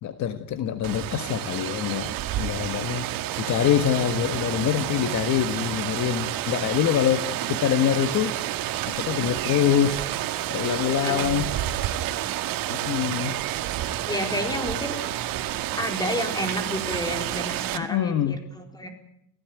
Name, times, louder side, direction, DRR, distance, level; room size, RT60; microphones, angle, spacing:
voice 1, 0.0-3.1 3.4-8.3 8.9-10.1 10.5-11.5 12.7-13.4 17.7-18.5, left 10 dB, 50° left, 9 dB, 1.6 m, -25 dB
Rain, 0.8-17.8, right 13 dB, 60° right, 2.1 m, -29 dB
voice 2, 11.0-11.5 14.1-15.1 15.7-18.9, left 1 dB, 10° left, 5 dB, 4.4 m, -31 dB
29.0 x 17.0 x 9.4 m, 0.76 s
cardioid pair, 155°, 38 cm